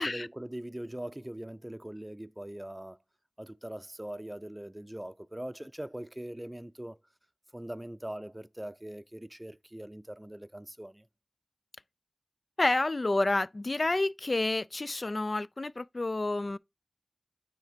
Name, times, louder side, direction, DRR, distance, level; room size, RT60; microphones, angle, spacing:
voice 1, 0.0-3.0 3.4-7.0 7.5-11.0, right 1 dB, 20° right, 0.5 m, -41 dB
voice 2, 12.6-16.6, left 2 dB, 60° left, 0.3 m, -29 dB
9.2 x 3.4 x 5.0 m
wide cardioid pair, 55°, 0 cm